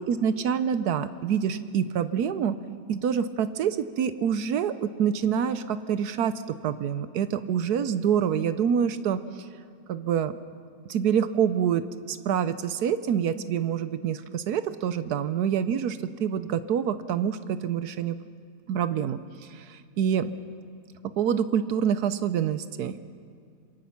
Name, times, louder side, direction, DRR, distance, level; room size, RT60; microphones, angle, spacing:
voice 1, 0.0-2.6 2.9-9.5 9.9-10.3 10.9-18.2 18.7-20.3 21.0-23.0, right 8 dB, 75° right, 12 dB, 1.3 m, -26 dB
26.5 x 21.5 x 5.8 m, 2.2 s
omnidirectional pair, 1.7 m